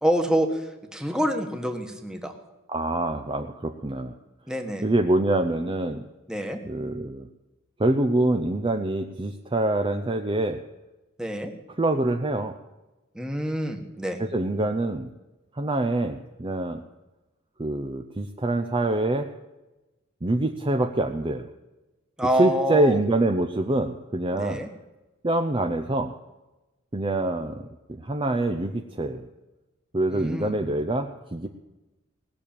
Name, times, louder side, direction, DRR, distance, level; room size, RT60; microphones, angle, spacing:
voice 1, 0.0-2.4 4.5-4.9 6.3-6.6 11.2-11.5 13.1-14.2 22.2-23.0 24.3-24.7 30.1-30.5, equal, 5° right, 4 dB, 1.4 m, -27 dB
voice 2, 2.7-4.1 4.8-6.0 6.7-7.3 7.8-10.6 11.8-12.6 14.2-15.1 15.5-16.8 17.6-19.3 20.2-21.5 22.4-24.6 25.2-26.1 26.9-29.3 29.9-31.5, right 2 dB, 25° right, 5 dB, 0.6 m, -25 dB
18.5 x 6.8 x 8.7 m, 1.0 s
head